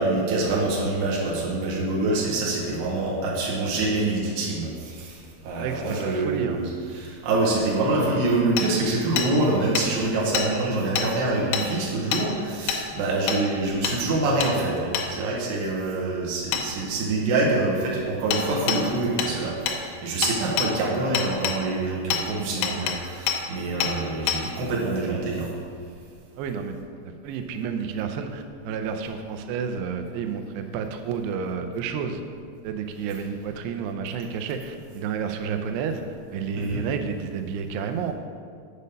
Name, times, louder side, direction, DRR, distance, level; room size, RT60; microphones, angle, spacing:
voice 1, 0.0-5.2 5.4-25.5 36.6-36.8, right 2 dB, 70° right, -4 dB, 3.4 m, -25 dB
voice 2, 5.6-6.6 26.4-26.7 27.2-32.2 32.6-36.0 36.3-38.1, right 6 dB, 85° right, 6 dB, 2.3 m, -30 dB
Hammer, 8.6-8.7 9.2-9.3 9.8-9.9 10.3-10.5 11.0-11.1 11.5-11.7 12.1-12.2 12.7-12.8 13.3-13.4 13.8-14.0 14.4-14.5 14.9-15.1 16.5-16.6 18.3-18.4 18.7-18.8 19.2-19.3 19.7-19.8 20.2-20.7 21.2-21.6 22.1-22.2 22.6-23.0 23.3-23.4 23.8-23.9 24.3-24.4, left 7 dB, 85° left, 3.1 m, -25 dB
8.5 x 5.3 x 5.3 m, 2.2 s
omnidirectional pair, 5.4 m